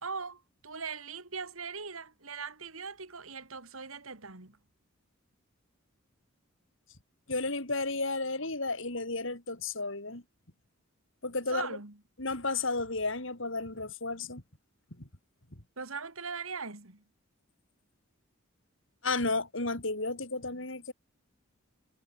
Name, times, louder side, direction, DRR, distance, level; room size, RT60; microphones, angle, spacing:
voice 1, 0.0-4.6 11.5-12.0 15.8-17.0, right 5 dB, 75° right, 2.9 m, -40 dB
voice 2, 7.3-10.2 11.2-11.7 12.2-14.4 19.0-20.9, left 3 dB, 60° left, 3.5 m, -32 dB
head